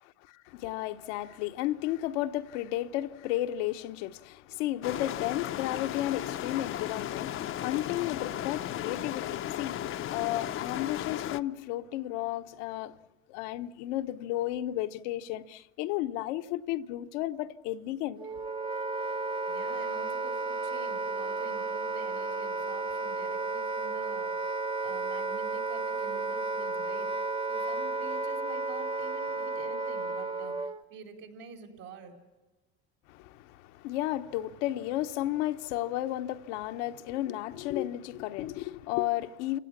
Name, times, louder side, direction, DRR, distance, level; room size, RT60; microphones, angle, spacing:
voice 1, 0.3-13.0 13.3-18.2 33.1-39.6, left 14 dB, 80° left, 1.0 m, -33 dB
sound 1, 4.8-11.4, left 11 dB, 35° left, 0.6 m, -35 dB
Wind instrument woodwind instrument, 18.2-30.8, right 3 dB, 15° right, 0.7 m, -33 dB
voice 2, 19.5-32.2, right 6 dB, 75° right, 4.9 m, -48 dB
29.5 x 17.0 x 7.2 m
supercardioid pair, 115°, 35 cm